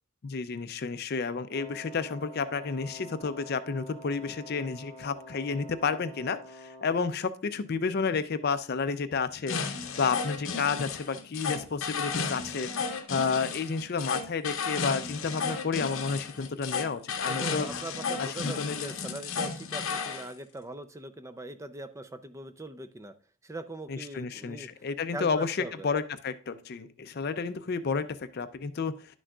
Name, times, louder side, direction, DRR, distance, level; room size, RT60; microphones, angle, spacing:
voice 1, 0.2-12.7 13.1-17.7 18.2-18.9 23.9-29.2, left 5 dB, 50° left, 12 dB, 0.5 m, -31 dB
Wind instrument woodwind instrument, 1.5-7.2, equal, 30° left, 0.8 m, -47 dB
sound 1, 9.5-20.3, left 5 dB, 70° left, 0.8 m, -33 dB
voice 2, 17.2-23.1 23.4-24.7 25.1-25.9, right 2 dB, 15° right, 10 dB, 0.4 m, -41 dB
11.0 x 6.2 x 2.3 m, 0.39 s
head